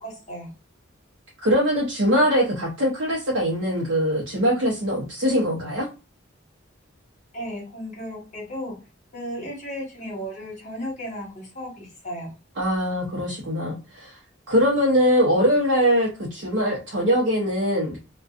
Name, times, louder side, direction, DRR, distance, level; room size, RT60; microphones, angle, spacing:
voice 1, 0.0-0.5 7.3-8.7 9.1-12.3, equal, 40° left, -3 dB, 1.2 m, -34 dB
voice 2, 1.4-5.9 12.6-14.2 14.5-18.0, equal, 65° right, -5 dB, 0.7 m, -22 dB
2.5 x 2.2 x 2.4 m, 0.31 s
head